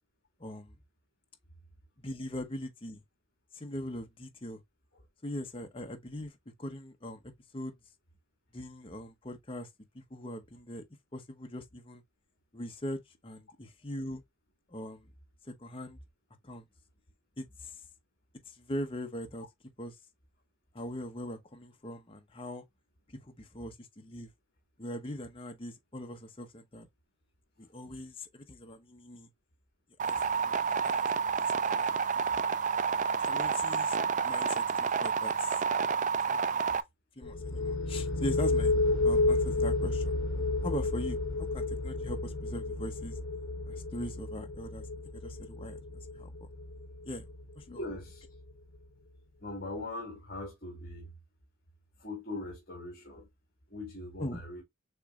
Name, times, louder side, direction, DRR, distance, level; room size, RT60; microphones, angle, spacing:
voice 1, 0.4-0.8 2.0-3.0 3.5-4.6 5.2-7.8 8.5-9.7 9.9-10.8 11.1-12.0 12.5-14.2 14.7-15.1 15.4-16.0 16.4-16.6 17.4-17.8 18.5-19.5 19.8-19.9 20.7-22.6 23.1-24.3 24.8-26.9 27.6-29.3 30.0-32.3 33.2-34.0 34.2-35.6 36.3-36.8 37.2-38.8 39.0-40.1 40.6-43.2 43.7-44.9 45.1-46.5 47.1-47.2 47.6-47.8 54.2-54.4, left 1 dB, 25° left, 0.8 m, -41 dB
sound 1, 30.0-36.8, right 6 dB, 35° right, 0.4 m, -29 dB
sound 2, 37.2-48.8, left 2 dB, 75° left, 0.8 m, -32 dB
voice 2, 47.7-48.2 49.4-51.1 52.0-53.3 53.7-54.6, left 2 dB, 45° left, 1.8 m, -41 dB
6.6 x 3.1 x 2.3 m
head